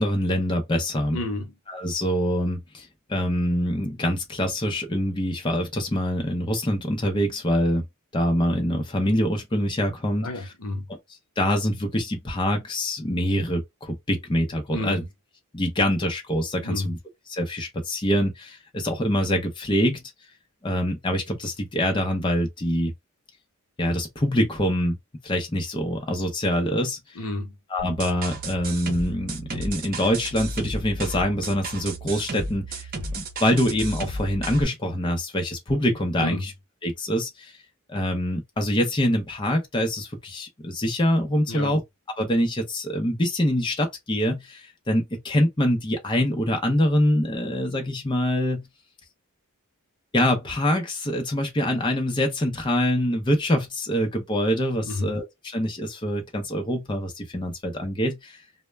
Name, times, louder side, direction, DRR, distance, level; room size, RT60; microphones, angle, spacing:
voice 1, 0.0-1.2 1.7-7.8 8.1-10.3 11.4-15.0 15.5-16.9 17.3-20.0 20.6-22.9 23.8-25.0 25.2-27.0 27.7-32.9 33.1-36.4 36.8-37.5 37.9-41.8 42.2-48.7 50.1-58.4, equal, 20° left, 0.6 m, -25 dB
voice 2, 1.1-1.5 10.2-10.9 14.7-15.1 16.6-16.9 27.1-27.6 36.2-36.5 41.5-41.8 54.8-55.1, left 2 dB, 85° left, 0.7 m, -30 dB
sound 1, 27.8-34.6, right 1 dB, 40° right, 0.6 m, -33 dB
2.1 x 2.1 x 3.1 m
head